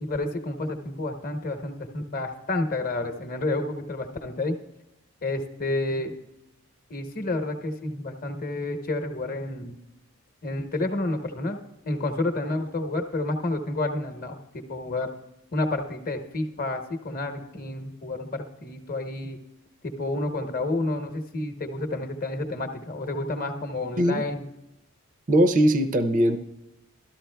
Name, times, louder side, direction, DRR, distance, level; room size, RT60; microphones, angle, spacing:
voice 1, 0.0-4.6 5.2-6.1 6.9-9.8 10.4-11.6 11.8-15.1 15.5-19.4 19.8-24.4, left 2 dB, 40° left, 5 dB, 0.9 m, -30 dB
voice 2, 25.3-26.4, equal, 35° right, 7 dB, 0.5 m, -20 dB
13.0 x 13.0 x 2.2 m, 0.94 s
head